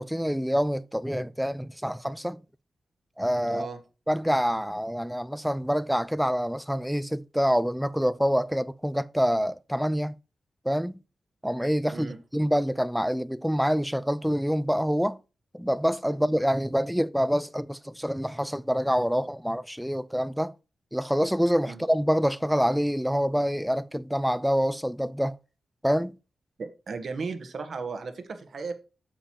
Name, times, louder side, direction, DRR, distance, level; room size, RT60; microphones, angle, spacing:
voice 1, 0.0-2.4 3.2-3.7 4.1-10.1 10.6-11.0 11.4-15.2 15.5-20.5 20.9-25.4 25.8-26.1, equal, ahead, 0.5 m, -26 dB
voice 2, 26.6-28.7, right 4 dB, 65° right, 1.4 m, -35 dB
8.9 x 7.1 x 2.9 m
cardioid pair, 65°, 0 cm